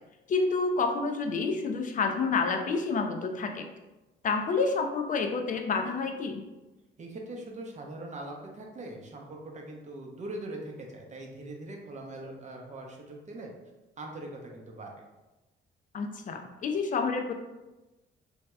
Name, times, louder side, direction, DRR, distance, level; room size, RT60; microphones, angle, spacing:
voice 1, 0.3-3.7 4.2-6.4 15.9-17.3, left 4 dB, 40° left, 4 dB, 0.4 m, -29 dB
voice 2, 7.0-13.5 14.0-15.0, right 2 dB, 35° right, 1 dB, 0.6 m, -41 dB
3.0 x 2.7 x 2.2 m, 1.1 s
cardioid pair, 90°, 20 cm